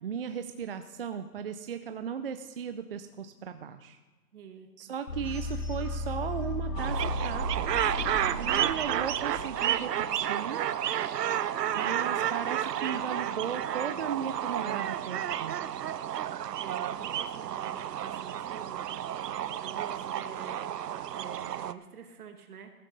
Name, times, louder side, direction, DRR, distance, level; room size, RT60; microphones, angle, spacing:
voice 1, 0.0-4.0 4.8-7.9 8.4-10.6 11.7-15.6, right 7 dB, 40° right, 8 dB, 0.5 m, -36 dB
voice 2, 4.3-4.9 16.6-20.8 21.1-22.7, right 7 dB, 70° right, 5 dB, 2.2 m, -47 dB
sound 1, 5.1-10.0, left 1 dB, 80° left, 3.8 m, -35 dB
sound 2, 6.8-21.7, right 10 dB, 90° right, 0.7 m, -31 dB
14.5 x 13.0 x 4.0 m, 1.3 s
hypercardioid pair, 155°, 47 cm